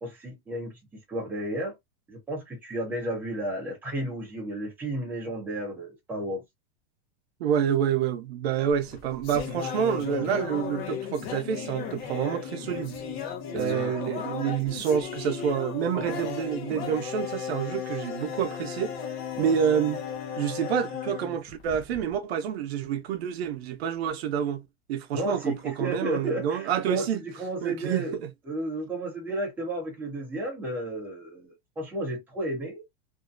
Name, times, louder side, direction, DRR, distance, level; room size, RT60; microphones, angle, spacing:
voice 1, 0.0-0.7 1.1-1.8 2.1-6.4 13.5-13.9 19.3-19.6 25.1-28.2 28.5-32.8, right 1 dB, 5° right, 0.9 m, -33 dB
voice 2, 7.4-13.0 13.5-18.9 19.4-20.0 20.4-24.6 24.9-27.2 27.6-28.0, right 8 dB, 80° right, 0.7 m, -28 dB
sound 1, 8.7-22.2, left 7 dB, 40° left, 0.7 m, -35 dB
2.6 x 2.2 x 2.4 m
supercardioid pair, 170°, 31 cm